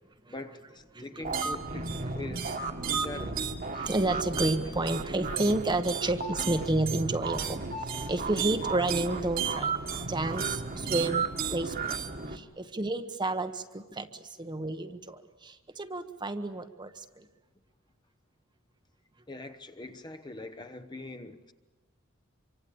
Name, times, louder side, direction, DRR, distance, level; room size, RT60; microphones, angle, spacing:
voice 1, 0.3-2.5 2.9-3.4 19.3-21.5, left 2 dB, 20° left, 1.1 m, -42 dB
voice 2, 0.9-1.3 2.3-2.4 2.9-3.2 3.8-7.6 8.1-12.0 12.3-17.3, right 2 dB, 20° right, 1.1 m, -31 dB
sound 1, 1.2-12.4, right 5 dB, 45° right, 1.8 m, -33 dB
26.0 x 24.5 x 8.5 m
head